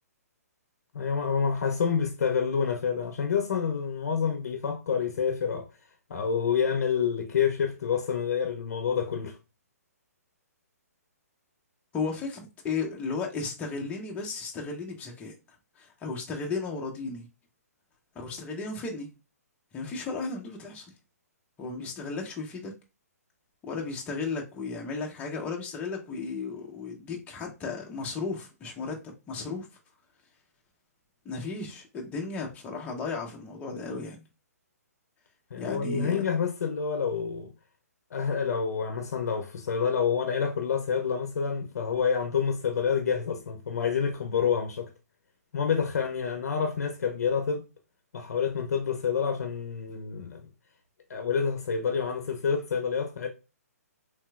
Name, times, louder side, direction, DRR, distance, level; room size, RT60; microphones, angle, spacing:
voice 1, 0.9-5.7 6.1-9.4 35.5-37.5 38.1-44.9 45.5-47.7 48.1-50.5 51.1-53.3, left 6 dB, 70° left, 0.6 m, -28 dB
voice 2, 11.9-15.3 15.8-17.3 18.1-19.1 19.7-20.9 21.6-22.7 23.6-29.7 31.2-34.2 35.6-36.3, left 4 dB, 15° left, 0.6 m, -34 dB
3.2 x 2.8 x 2.2 m
hypercardioid pair, 145°, 9 cm